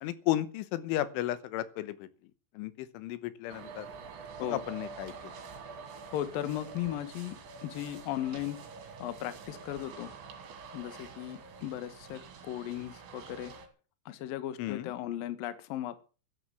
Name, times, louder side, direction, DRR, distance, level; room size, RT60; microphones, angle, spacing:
voice 1, 0.0-2.1 2.6-3.9 4.4-5.3 14.6-14.9, left 14 dB, 85° left, 15 dB, 3.5 m, -34 dB
sound 1, 3.5-13.7, right 5 dB, 70° right, 5.1 m, -47 dB
voice 2, 6.1-7.4 7.6-8.6 9.0-10.1 10.7-13.5 14.1-16.0, left 12 dB, 65° left, 12 dB, 2.6 m, -36 dB
13.0 x 11.0 x 7.3 m, 0.36 s
omnidirectional pair, 5.4 m